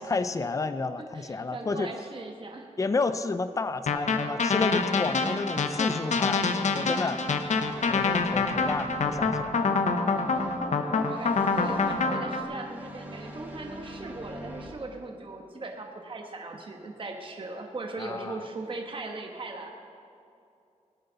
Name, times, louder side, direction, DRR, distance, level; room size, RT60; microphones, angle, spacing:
voice 1, 0.0-1.9 2.8-6.5 6.7-7.2 7.9-9.6 10.9-11.1 18.0-18.4, left 3 dB, 25° left, 12 dB, 0.4 m, -31 dB
voice 2, 1.0-2.7 10.1-10.5 11.0-19.7, right 3 dB, 45° right, 2 dB, 1.2 m, -39 dB
sound 1, 3.9-12.4, left 4 dB, 70° left, 0.9 m, -26 dB
sound 2, 6.4-14.7, equal, 15° right, 2.3 m, -42 dB
19.5 x 9.8 x 4.0 m, 2.6 s
wide cardioid pair, 115°, 13 cm